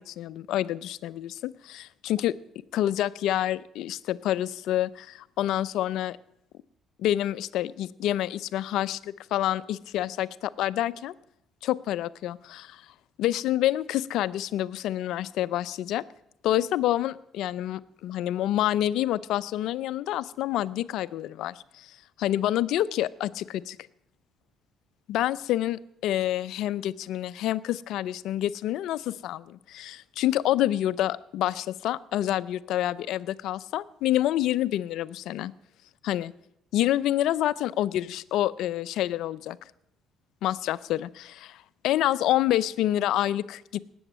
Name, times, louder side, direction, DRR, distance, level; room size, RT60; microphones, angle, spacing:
voice 1, 0.0-2.4 2.7-6.2 7.0-11.1 11.6-12.9 13.2-16.0 16.4-23.8 25.1-35.5 36.0-36.3 36.7-39.6 40.4-43.8, left 13 dB, 75° left, 17 dB, 0.5 m, -28 dB
19.0 x 7.9 x 7.4 m, 0.80 s
supercardioid pair, 70°, 0 cm